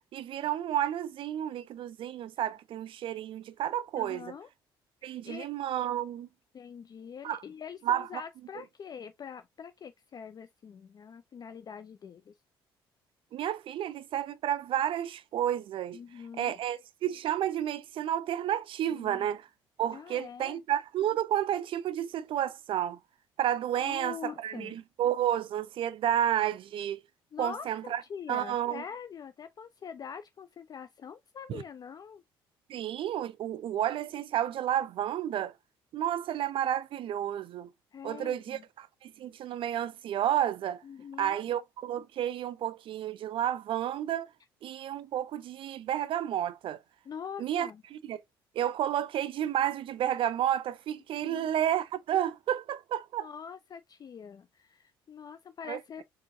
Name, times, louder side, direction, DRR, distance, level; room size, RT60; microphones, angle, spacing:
voice 1, 0.0-4.3 5.0-6.3 7.2-7.4 7.9-8.1 13.3-16.0 16.4-19.5 19.8-23.0 23.4-27.0 27.4-28.0 28.3-28.8 31.5-31.6 32.7-35.5 35.9-37.7 38.0-40.8 41.2-44.3 44.6-46.8 47.4-48.2 48.5-53.3 55.7-55.8, right 11 dB, 45° right, 0.4 m, -31 dB
voice 2, 4.0-4.5 5.0-5.5 6.5-12.3 15.9-16.6 18.9-19.3 19.9-20.6 23.8-24.8 27.3-32.2 37.9-38.6 40.8-41.4 47.1-47.8 51.2-51.5 53.2-56.0, left 7 dB, 30° left, 0.4 m, -44 dB
4.5 x 3.1 x 2.6 m
figure-of-eight pair, 50°, 12 cm